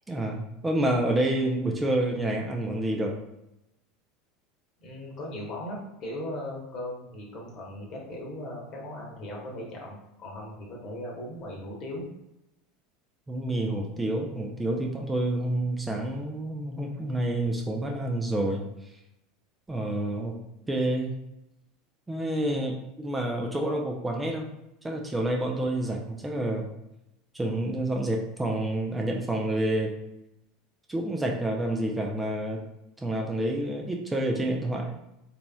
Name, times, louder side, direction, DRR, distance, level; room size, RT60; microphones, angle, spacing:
voice 1, 0.1-3.1 13.3-18.6 19.7-20.3 20.7-21.2 22.1-24.5 24.8-26.7 27.3-29.9 30.9-32.6 33.0-35.0, right 1 dB, 15° right, 0 dB, 0.5 m, -28 dB
voice 2, 4.8-12.1, left 1 dB, 45° left, -2 dB, 1.2 m, -38 dB
3.9 x 2.9 x 2.3 m, 0.87 s
figure-of-eight pair, 75°, 0 cm